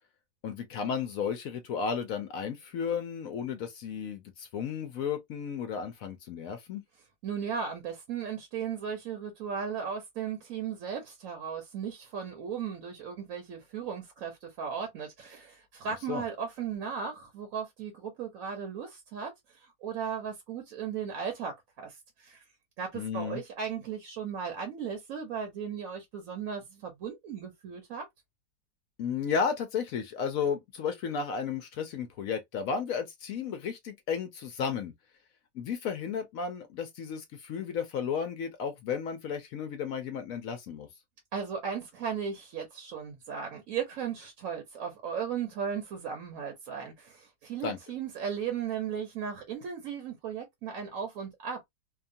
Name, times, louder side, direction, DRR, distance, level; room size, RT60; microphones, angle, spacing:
voice 1, 0.4-6.8 16.1-16.2 22.9-23.4 29.0-34.9 35.5-40.9 47.6-47.8, left 6 dB, 70° left, 0.8 m, -33 dB
voice 2, 7.2-22.4 22.8-28.0 41.3-51.7, right 7 dB, 65° right, 1.0 m, -36 dB
2.8 x 2.3 x 2.6 m
omnidirectional pair, 1.8 m